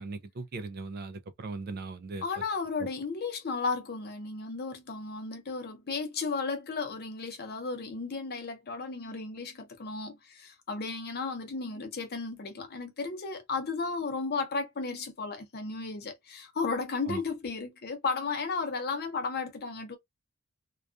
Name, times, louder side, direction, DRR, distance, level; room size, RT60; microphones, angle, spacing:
voice 1, 0.0-2.2 17.1-17.2, right 3 dB, 45° right, 0.3 m, -38 dB
voice 2, 2.2-20.0, left 4 dB, 45° left, 0.6 m, -34 dB
2.3 x 2.3 x 2.3 m
head